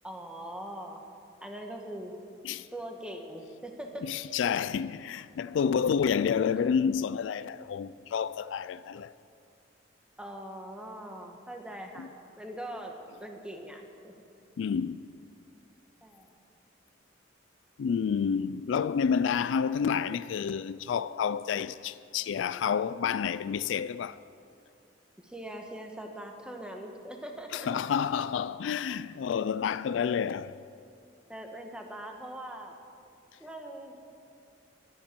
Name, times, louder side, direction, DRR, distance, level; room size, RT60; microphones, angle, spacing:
voice 1, 0.0-1.0 1.4-2.1 2.7-4.1 10.2-12.1 12.4-14.1 16.0-16.3 25.2-27.7 31.3-32.8 33.4-34.1, right 1 dB, 5° right, 1.2 m, -41 dB
voice 2, 4.0-9.1 12.0-12.1 14.6-15.1 17.8-24.2 27.5-30.6, left 7 dB, 75° left, 0.3 m, -29 dB
22.0 x 10.0 x 4.5 m
head